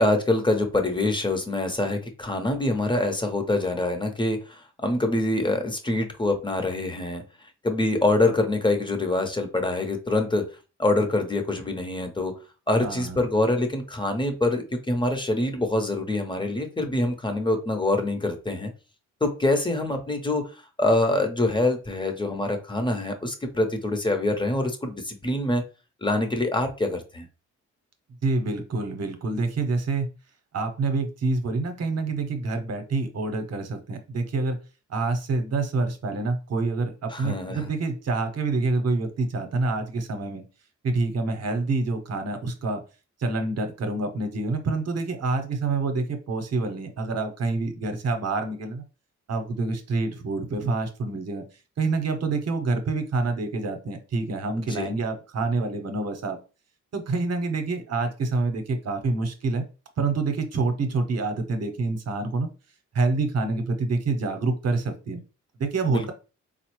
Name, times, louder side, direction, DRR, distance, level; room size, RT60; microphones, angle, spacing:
voice 1, 0.0-7.2 7.6-10.5 10.8-12.3 12.7-18.7 19.2-25.6 26.0-27.3 37.1-37.7 54.5-54.9 65.9-66.1, left 2 dB, 15° left, 5 dB, 0.7 m, -25 dB
voice 2, 12.8-13.2 28.2-30.1 30.5-34.6 34.9-40.4 40.8-42.8 43.2-48.8 49.3-51.4 51.8-56.4 56.9-59.6 60.0-62.5 62.9-65.2 65.6-66.1, right 3 dB, 55° right, 7 dB, 0.8 m, -27 dB
3.7 x 2.0 x 3.0 m, 0.33 s
cardioid pair, 70°, 31 cm